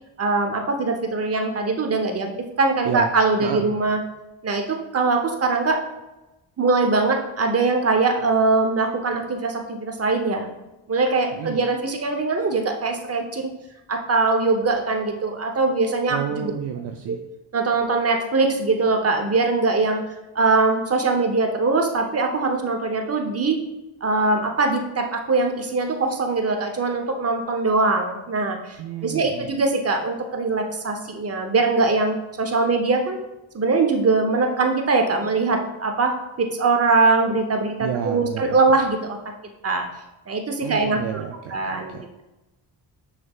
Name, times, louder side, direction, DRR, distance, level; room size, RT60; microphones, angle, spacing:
voice 1, 0.2-2.3 2.6-4.0 4.4-5.8 6.6-10.5 10.9-13.5 13.9-16.5 17.1-17.2 17.5-20.0 20.3-23.6 24.0-28.8 29.0-33.2 33.5-39.2 39.6-39.9 40.3-41.2 41.5-42.2, right 3 dB, 30° right, 4 dB, 0.8 m, -22 dB
voice 2, 3.4-3.8 11.3-11.6 16.1-17.2 28.8-29.5 37.8-38.6 40.6-41.6 41.9-42.0, right 8 dB, 60° right, 4 dB, 0.5 m, -30 dB
6.3 x 3.4 x 2.4 m, 0.99 s
cardioid pair, 75°, 47 cm